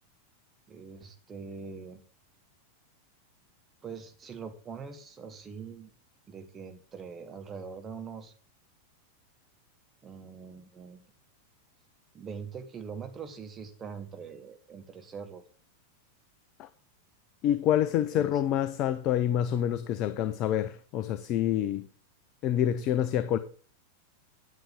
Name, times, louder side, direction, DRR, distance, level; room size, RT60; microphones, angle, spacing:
voice 1, 0.7-2.0 3.8-5.9 6.3-8.3 10.0-11.1 12.1-15.4 18.1-18.4, right 6 dB, 20° right, 1.5 m, -43 dB
voice 2, 17.4-21.9 22.4-23.4, left 10 dB, 40° left, 0.7 m, -27 dB
9.5 x 9.1 x 3.7 m
figure-of-eight pair, 90°, 0 cm